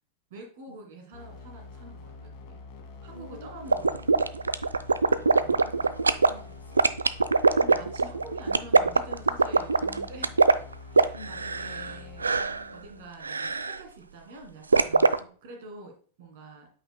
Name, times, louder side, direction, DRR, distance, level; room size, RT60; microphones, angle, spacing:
voice 1, 0.3-2.6 3.0-4.2 5.2-6.0 7.1-10.6 10.9-15.1 15.4-16.7, right 2 dB, 50° right, 3 dB, 2.1 m, -47 dB
sound 1, 1.1-13.1, left 4 dB, 50° left, 1.5 m, -46 dB
voice 2, 3.1-4.4 4.8-6.8 11.1-11.9 15.2-15.3, left 1 dB, 80° left, 7 dB, 1.2 m, -50 dB
sound 2, 3.7-6.3 6.8-11.9 12.2-12.6 13.2-13.8 14.7-15.2, right 4 dB, 75° right, 0.3 m, -22 dB
8.5 x 5.6 x 2.2 m, 0.43 s
figure-of-eight pair, 90°, 0 cm